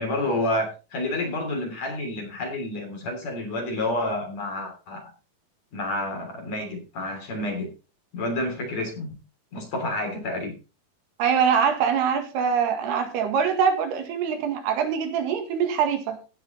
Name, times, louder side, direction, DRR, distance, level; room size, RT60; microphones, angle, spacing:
voice 1, 0.0-5.1 5.7-7.7 8.1-9.2 9.5-10.5, left 1 dB, 45° left, 4.3 m, -29 dB
voice 2, 11.2-16.2, right 7 dB, 85° right, 3.9 m, -23 dB
17.0 x 5.9 x 4.4 m
omnidirectional pair, 4.5 m